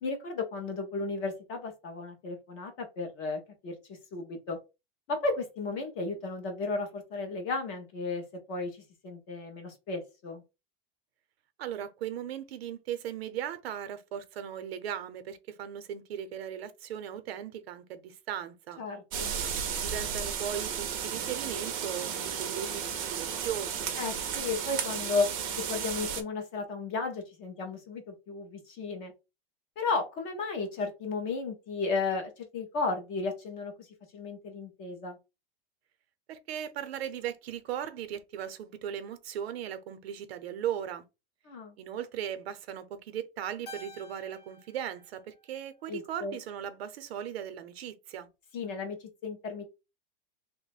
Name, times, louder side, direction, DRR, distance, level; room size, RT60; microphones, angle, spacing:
voice 1, 0.0-4.6 5.1-10.4 18.8-19.3 24.0-25.3 25.5-29.1 29.8-33.9 34.1-35.2 41.5-41.7 45.9-46.3 48.5-49.8, left 3 dB, 20° left, 0.4 m, -34 dB
voice 2, 11.6-18.8 19.8-23.9 36.3-41.0 41.8-48.3, right 9 dB, 85° right, 0.7 m, -38 dB
sound 1, 19.1-26.2, right 7 dB, 35° right, 0.5 m, -34 dB
Keyboard (musical), 43.7-46.2, equal, 45° left, 0.8 m, -51 dB
3.0 x 2.1 x 4.0 m
supercardioid pair, 175°, 30 cm